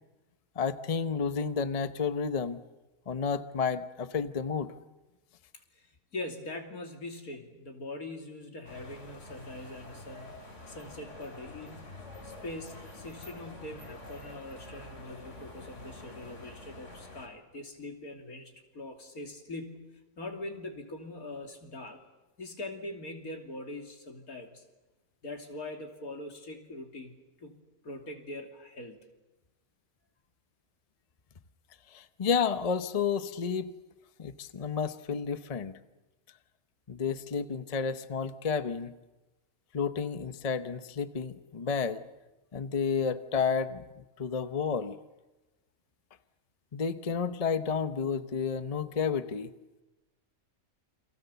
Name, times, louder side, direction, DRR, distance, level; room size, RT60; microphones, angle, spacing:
voice 1, 0.6-2.6 3.1-4.7 31.9-33.7 34.2-35.8 36.9-38.9 39.7-42.0 42.5-45.0 46.7-49.5, left 6 dB, 30° left, 11 dB, 0.8 m, -31 dB
voice 2, 6.1-11.9 12.2-22.0 22.4-24.6 25.2-29.0, left 2 dB, 80° left, 3 dB, 3.4 m, -42 dB
sound 1, 8.6-17.3, left 2 dB, 55° left, 3.6 m, -47 dB
29.0 x 24.0 x 7.0 m, 1.1 s
omnidirectional pair, 1.5 m